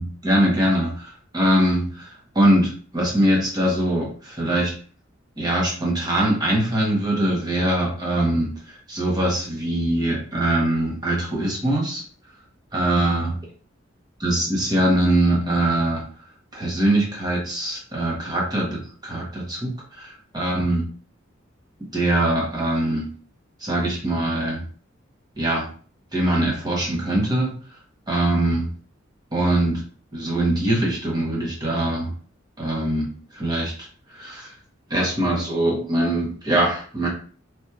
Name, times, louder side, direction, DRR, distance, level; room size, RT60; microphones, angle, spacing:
voice 1, 0.0-4.7 5.4-12.0 12.7-13.3 14.2-16.0 16.5-19.7 20.0-20.8 21.9-23.0 23.6-24.6 25.4-25.7 26.1-27.5 28.1-28.7 29.3-29.8 30.1-32.1 32.6-33.1 33.3-33.7 34.1-34.5 34.9-37.1, right 1 dB, 20° right, -3 dB, 1.1 m, -22 dB
3.4 x 2.6 x 2.8 m, 0.42 s
head